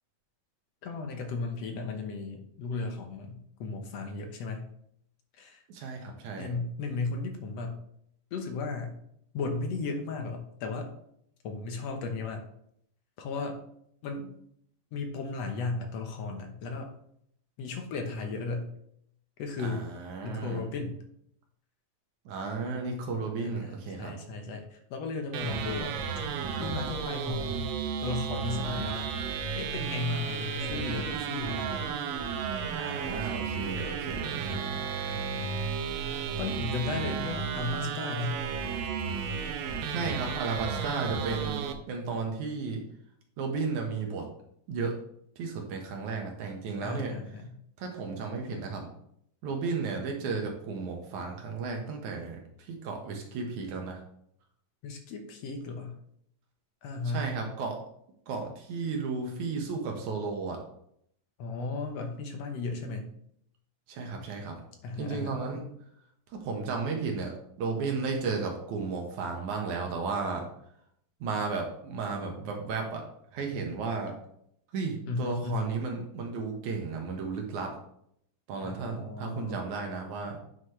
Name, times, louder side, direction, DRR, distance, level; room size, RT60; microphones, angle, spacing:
voice 1, 0.8-4.7 5.4-5.6 6.4-7.8 8.3-9.0 9.3-10.9 11.4-12.4 13.2-13.6 14.0-14.4 14.9-16.9 17.6-18.7 19.4-19.9 20.2-21.0 23.4-26.0 26.6-27.7 28.0-29.1 29.6-31.8 34.4-35.7 36.4-38.4 46.8-47.5 54.8-56.0 56.8-57.3 61.4-63.1 64.8-65.4 75.1-75.7 78.6-79.6, left 3 dB, 65° left, 4 dB, 1.8 m, -35 dB
voice 2, 5.7-6.5 19.6-20.7 22.3-24.2 32.8-34.7 39.8-42.8 43.4-44.2 44.7-44.9 45.4-47.2 47.8-48.9 49.4-54.0 57.0-57.8 58.3-60.6 63.9-64.6 65.0-65.6 66.4-67.3 67.6-70.5 71.2-73.0 73.3-74.1 74.7-77.8 78.5-80.4, right 4 dB, 65° right, 2 dB, 2.6 m, -34 dB
sound 1, 25.3-41.7, right 6 dB, 85° right, 2.5 m, -33 dB
9.7 x 6.2 x 3.2 m, 0.70 s
omnidirectional pair, 3.9 m